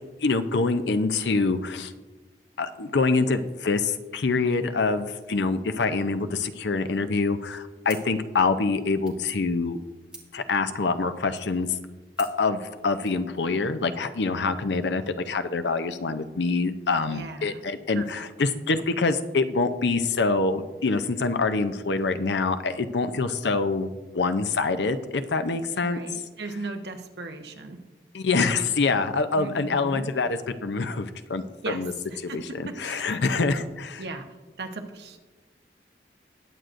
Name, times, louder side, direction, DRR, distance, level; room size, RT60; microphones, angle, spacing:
voice 1, 0.2-1.9 2.6-9.8 10.3-11.7 12.2-23.9 24.1-26.0 28.1-31.9 32.2-34.0, left 3 dB, 80° left, 9 dB, 0.6 m, -25 dB
sound 1, 7.8-13.2, right 2 dB, 5° right, 1.5 m, -51 dB
voice 2, 17.1-17.6 17.9-18.2 25.8-27.8 29.3-30.0 31.6-31.8 32.1-33.1 34.0-34.3 34.6-35.2, right 3 dB, 75° right, 5 dB, 1.0 m, -37 dB
20.0 x 7.9 x 2.6 m, 1.2 s
head